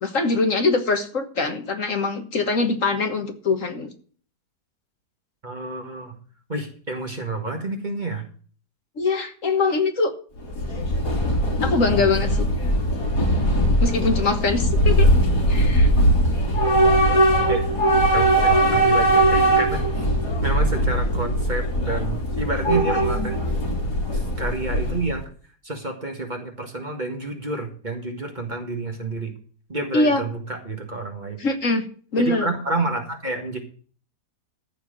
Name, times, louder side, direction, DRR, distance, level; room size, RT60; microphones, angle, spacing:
voice 1, 0.0-3.9 9.0-10.1 11.6-12.5 13.8-15.1 15.5-15.9 29.9-30.2 31.4-31.8 32.1-32.5, left 3 dB, 55° left, 6 dB, 1.7 m, -23 dB
voice 2, 5.4-6.2 6.5-8.3 17.5-17.6 18.0-20.0 20.4-23.5 24.1-25.3 25.6-29.3 29.7-31.4 32.2-33.6, right 2 dB, 30° right, 3 dB, 1.8 m, -29 dB
Train / Subway metro underground, 10.4-25.2, right 1 dB, 75° left, 3.6 m, -20 dB
14.0 x 4.8 x 8.8 m, 0.43 s
omnidirectional pair, 1.7 m